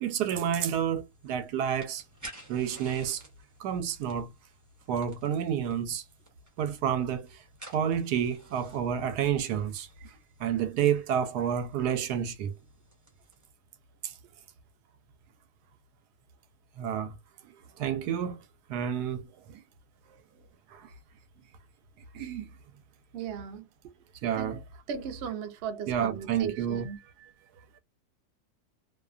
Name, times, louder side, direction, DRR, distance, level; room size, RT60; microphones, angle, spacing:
voice 1, 0.0-2.0 2.5-3.2 3.6-4.3 4.9-6.0 6.6-7.4 7.7-12.5 14.0-14.1 16.8-17.2 17.8-18.4 18.7-19.3 20.7-20.9 22.1-22.5 24.2-24.6 25.9-26.9, right 9 dB, 85° right, 1.1 m, -29 dB
sound 1, 1.0-13.5, right 1 dB, 15° right, 0.7 m, -53 dB
voice 2, 20.1-20.5 23.1-23.9 24.4-24.5 24.9-27.0, right 7 dB, 65° right, 0.6 m, -38 dB
2.7 x 2.2 x 2.3 m
omnidirectional pair, 1.7 m